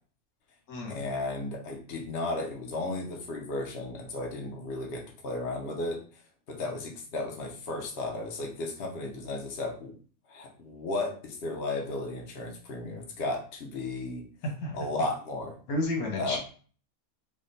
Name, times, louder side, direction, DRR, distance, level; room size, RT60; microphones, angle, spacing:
voice 1, 0.9-6.0 6.5-9.9 10.3-14.2 14.7-15.6 16.2-16.4, left 2 dB, 50° left, 0 dB, 0.9 m, -34 dB
voice 2, 15.7-16.4, left 2 dB, 80° left, 0 dB, 1.5 m, -31 dB
3.6 x 2.2 x 3.9 m, 0.41 s
omnidirectional pair, 1.5 m